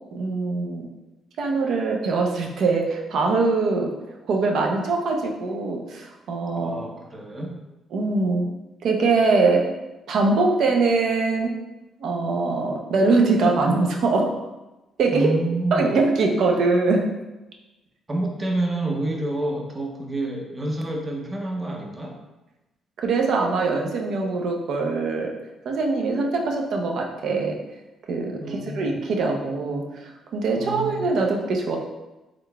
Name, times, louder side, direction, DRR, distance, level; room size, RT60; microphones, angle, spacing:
voice 1, 0.1-0.9 1.4-3.9 4.3-6.9 7.9-8.5 8.8-9.7 10.1-11.5 12.0-14.3 15.0-15.3 15.7-17.1 23.0-25.3 25.6-27.6 28.1-31.8, right 3 dB, 70° right, 2 dB, 0.6 m, -22 dB
voice 2, 6.6-7.5 15.1-15.9 18.1-22.2 28.4-29.0 30.6-31.1, right 1 dB, 25° right, 1 dB, 0.6 m, -28 dB
3.7 x 3.5 x 2.2 m, 1.0 s
cardioid pair, 90°, 0 cm